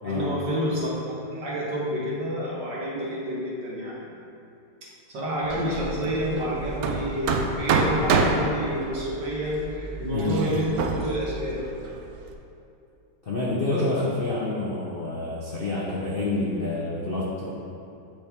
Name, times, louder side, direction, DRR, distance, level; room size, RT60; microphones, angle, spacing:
voice 1, 0.0-0.9 1.3-4.1 5.1-11.6 13.7-13.8, equal, 60° right, -6 dB, 2.0 m, -29 dB
Hammer, 5.4-12.3, right 4 dB, 85° right, 0.8 m, -28 dB
voice 2, 13.2-17.5, left 2 dB, 80° left, -6 dB, 0.5 m, -28 dB
8.9 x 4.4 x 3.5 m, 2.7 s
omnidirectional pair, 2.2 m